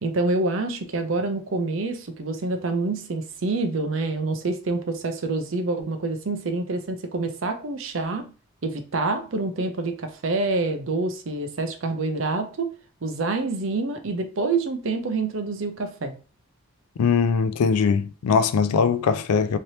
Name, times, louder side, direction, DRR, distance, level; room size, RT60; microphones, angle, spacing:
voice 1, 0.0-8.3 8.6-12.7 13.0-16.2, right 3 dB, 60° right, 0.5 m, -27 dB
voice 2, 17.0-19.6, left 5 dB, 85° left, 0.4 m, -21 dB
3.2 x 2.8 x 2.7 m
head